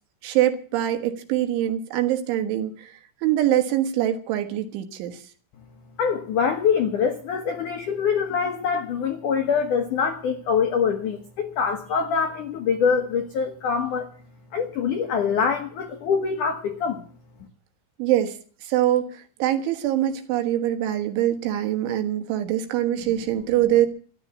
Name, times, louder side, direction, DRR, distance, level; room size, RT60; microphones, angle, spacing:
voice 1, 0.2-5.2 18.0-23.9, right 12 dB, 75° right, 7 dB, 3.7 m, -24 dB
voice 2, 6.0-14.1 14.5-17.0, left 6 dB, 80° left, 5 dB, 1.8 m, -24 dB
14.0 x 10.5 x 8.4 m, 0.44 s
omnidirectional pair, 5.8 m